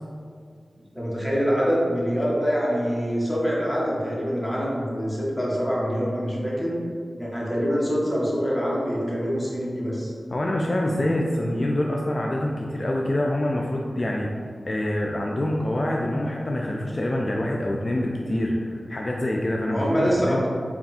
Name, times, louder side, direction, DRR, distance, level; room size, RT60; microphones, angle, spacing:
voice 1, 0.9-6.8 7.2-10.1 19.7-20.5, equal, 5° left, -6 dB, 1.1 m, -25 dB
voice 2, 10.3-14.3 14.7-20.5, left 1 dB, 45° left, -1 dB, 0.3 m, -26 dB
3.4 x 2.3 x 4.1 m, 2.1 s
cardioid pair, 50°, 0 cm